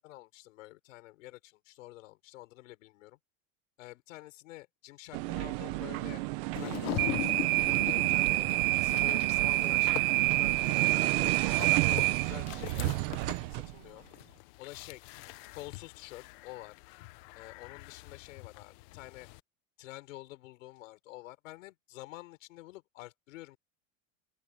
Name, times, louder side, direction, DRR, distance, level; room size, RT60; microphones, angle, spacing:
voice 1, 0.0-3.2 3.8-6.2 6.5-7.3 7.8-14.1 14.6-15.2 15.5-16.8 17.3-19.3 19.8-23.6, left 18 dB, 75° left, 6.4 m, -48 dB
sound 1, 5.1-13.7, right 20 dB, 45° right, 1.0 m, -28 dB
sound 2, 6.6-19.4, left 21 dB, 45° left, 0.8 m, -43 dB
open air
supercardioid pair, 170°, 39 cm